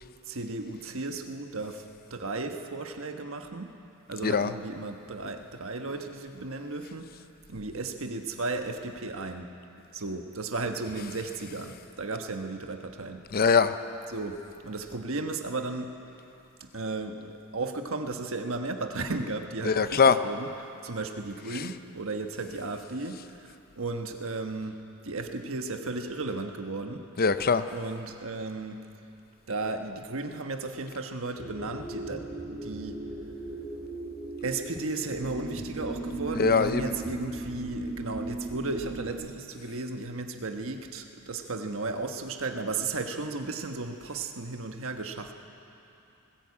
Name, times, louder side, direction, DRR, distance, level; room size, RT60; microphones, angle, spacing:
voice 1, 0.3-3.8 4.1-7.1 7.5-9.5 9.9-13.3 14.1-15.9 16.6-20.5 20.8-24.8 25.0-27.0 27.7-28.9 29.5-33.1 34.4-45.3, right 3 dB, 70° right, 5 dB, 1.3 m, -35 dB
voice 2, 13.3-13.7 19.6-20.2 21.5-21.6 27.2-27.7 36.4-36.8, left 5 dB, 45° left, 11 dB, 0.6 m, -22 dB
sound 1, 31.3-39.1, right 2 dB, 25° left, 2.6 m, -37 dB
19.5 x 16.0 x 8.5 m, 2.8 s
head